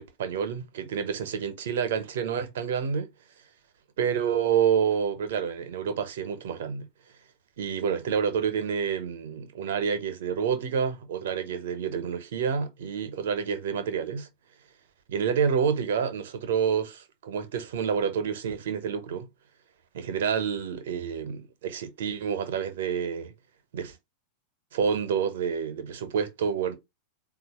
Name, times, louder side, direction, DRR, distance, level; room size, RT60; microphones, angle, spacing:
voice 1, 0.0-3.1 4.0-6.9 7.6-14.3 15.1-19.3 19.9-23.3 23.7-23.9 24.7-26.7, right 7 dB, 60° right, 0.9 m, -28 dB
4.1 x 2.5 x 4.2 m
figure-of-eight pair, 90°, 0 cm